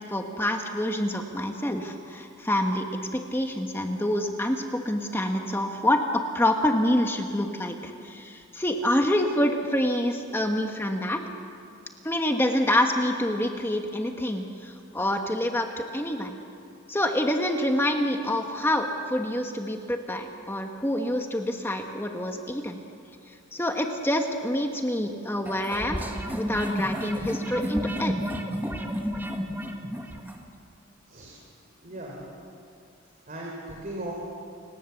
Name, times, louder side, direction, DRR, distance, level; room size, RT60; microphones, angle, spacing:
voice 1, 0.1-2.9 3.1-11.2 12.0-15.7 15.9-16.4 16.9-22.8 23.5-26.0 26.3-28.1, left 1 dB, 10° left, 4 dB, 1.3 m, -27 dB
sound 1, 25.5-30.4, equal, 10° right, 1.7 m, -31 dB
voice 2, 31.8-32.2 33.3-34.1, right 1 dB, 40° right, -3 dB, 3.9 m, -37 dB
30.0 x 18.0 x 7.2 m, 2.4 s
head